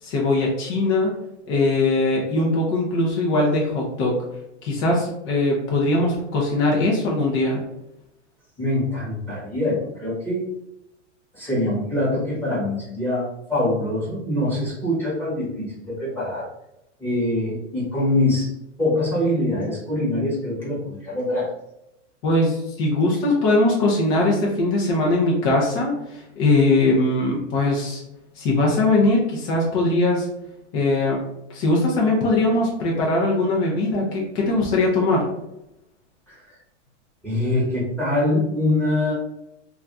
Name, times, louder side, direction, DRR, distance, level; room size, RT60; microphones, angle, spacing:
voice 1, 0.0-1.1 1.5-4.2 4.6-7.6 22.2-28.0 28.4-30.3 30.7-31.2 31.5-35.3, left 2 dB, 25° left, -3 dB, 0.3 m, -21 dB
voice 2, 8.6-10.4 11.3-16.5 17.0-18.5 18.8-21.5 37.2-39.1, left 1 dB, 5° left, -8 dB, 0.8 m, -24 dB
2.3 x 2.3 x 3.8 m, 0.85 s
hypercardioid pair, 145°, 37 cm